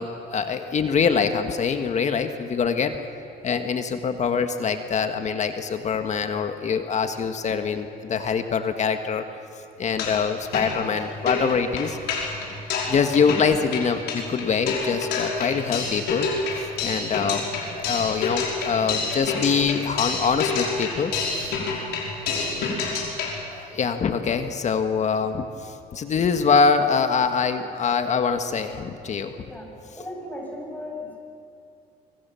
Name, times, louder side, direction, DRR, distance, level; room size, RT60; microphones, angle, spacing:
voice 1, 0.0-3.0 3.4-9.2 9.8-12.0 12.9-16.3 16.5-17.4 17.7-21.1 23.5-29.3, left 6 dB, 45° left, 7 dB, 1.6 m, -24 dB
sound 1, 9.8-10.3 10.5-23.4, left 4 dB, 80° left, 5.5 m, -28 dB
voice 2, 30.0-31.2, left 1 dB, 10° left, -1 dB, 7.6 m, -36 dB
25.5 x 24.5 x 7.1 m, 2.6 s
cardioid pair, 110°, 17 cm